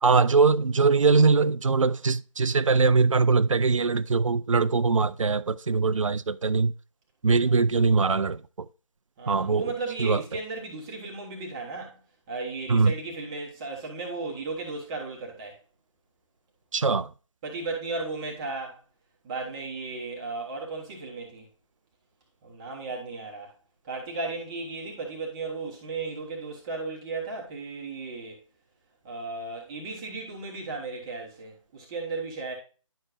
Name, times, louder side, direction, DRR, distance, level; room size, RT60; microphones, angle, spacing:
voice 1, 0.0-6.7 7.2-8.7 9.3-9.7 10.0-10.2 12.7-12.9 16.7-17.1, right 4 dB, 70° right, 0.4 m, -22 dB
voice 2, 9.2-12.0 12.3-15.5 17.4-18.8 19.2-21.5 22.4-23.5 23.8-28.4 29.0-32.5, right 3 dB, 10° right, 0.9 m, -35 dB
10.5 x 6.4 x 2.4 m
figure-of-eight pair, 155°, 17 cm